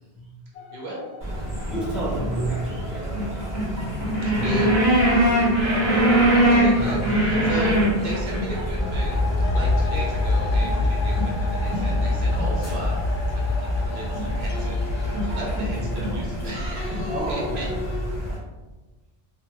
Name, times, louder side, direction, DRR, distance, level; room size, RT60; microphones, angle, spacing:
sound 1, 0.5-18.1, left 3 dB, 85° left, 0.8 m, -40 dB
sound 2, 1.2-18.4, right 1 dB, 15° left, 1.4 m, -24 dB
voice 1, 1.7-3.9 4.3-4.6 6.8-7.0 7.3-7.4 15.7-16.0 17.1-18.0, right 1 dB, ahead, -6 dB, 0.7 m, -31 dB
voice 2, 4.2-7.8 8.0-9.2 9.5-13.0 13.4-17.7, equal, 80° right, -4 dB, 1.2 m, -35 dB
sound 3, 8.6-16.4, left 2 dB, 55° left, 0.7 m, -25 dB
3.3 x 2.5 x 3.1 m, 1.2 s
omnidirectional pair, 1.1 m